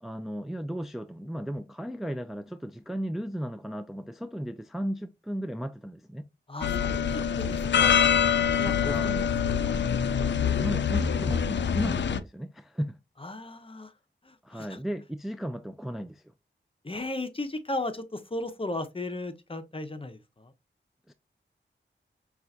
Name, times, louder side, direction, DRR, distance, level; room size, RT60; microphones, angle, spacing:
voice 1, 0.0-6.3 8.7-9.3 10.6-12.9 14.4-16.2 21.1-21.2, equal, ahead, 0.3 m, -35 dB
voice 2, 6.5-8.0 8.6-9.1 13.2-13.9 14.3-14.8 16.8-20.5, left 2 dB, 30° left, 0.7 m, -36 dB
sound 1, 6.6-12.2, left 7 dB, 70° left, 0.4 m, -25 dB
5.5 x 2.4 x 2.6 m
cardioid pair, 50°, 20 cm